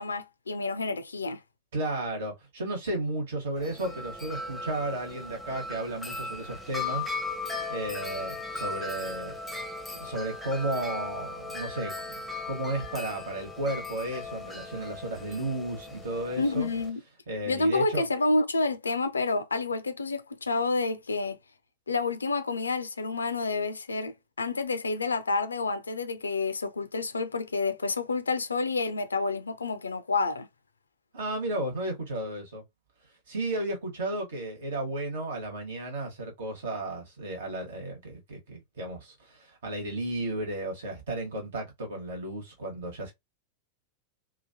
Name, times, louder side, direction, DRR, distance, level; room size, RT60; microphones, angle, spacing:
voice 1, 0.0-1.4 16.4-17.0 17.5-21.4 21.9-30.5, left 3 dB, 75° left, 0.4 m, -29 dB
voice 2, 1.7-9.3 9.9-16.7 17.3-18.1 31.1-32.6 33.3-43.1, right 1 dB, 60° right, 1.3 m, -34 dB
Wind chime, 3.6-16.9, left 3 dB, 5° left, 0.7 m, -37 dB
2.9 x 2.3 x 2.6 m
figure-of-eight pair, 90°, 0 cm